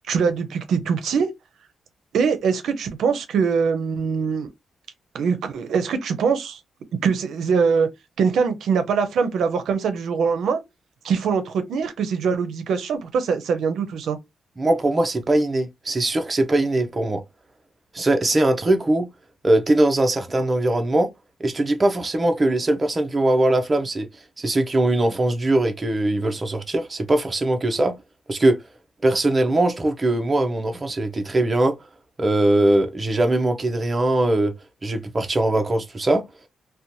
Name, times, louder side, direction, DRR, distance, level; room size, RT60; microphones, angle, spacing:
voice 1, 0.1-1.3 2.1-4.5 5.1-6.6 7.0-7.9 8.2-10.6 11.0-14.2, right 6 dB, 80° right, 0.5 m, -22 dB
voice 2, 14.6-17.2 17.9-19.1 19.4-21.1 21.4-24.1 24.4-28.0 28.3-28.6 29.0-31.8 32.2-34.5 34.8-36.2, right 1 dB, 25° right, 0.4 m, -21 dB
2.8 x 2.1 x 2.6 m
cardioid pair, 120°, 0 cm